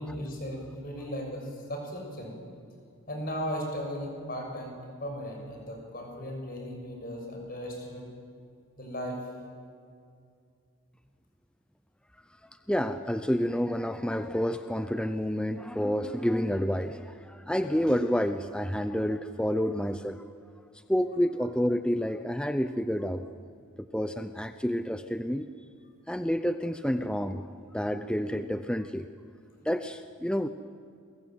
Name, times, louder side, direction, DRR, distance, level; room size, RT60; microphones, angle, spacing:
voice 1, 0.0-2.4 3.1-8.1 8.8-9.2, equal, 40° left, 1 dB, 6.8 m, -36 dB
voice 2, 12.7-20.2 20.9-23.3 23.8-25.5 26.1-29.1 29.6-30.5, equal, 5° left, 10 dB, 0.6 m, -29 dB
28.5 x 22.0 x 9.3 m, 2.3 s
head